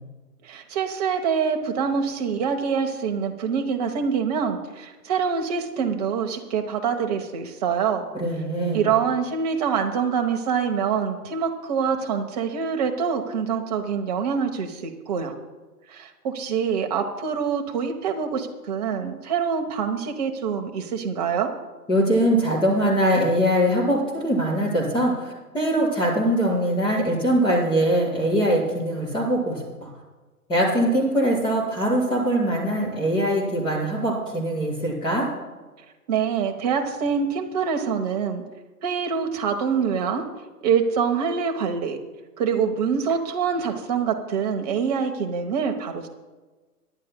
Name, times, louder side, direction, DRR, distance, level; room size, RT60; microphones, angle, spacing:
voice 1, 0.4-8.1 8.7-15.4 15.9-21.5 36.1-38.4 38.8-40.3 40.6-42.0 42.4-46.1, right 6 dB, 25° right, 4 dB, 1.0 m, -25 dB
voice 2, 8.1-8.9 21.9-29.9 30.5-35.3, right 1 dB, 10° left, -5 dB, 4.4 m, -22 dB
24.0 x 11.0 x 2.2 m, 1.3 s
figure-of-eight pair, 140°, 47 cm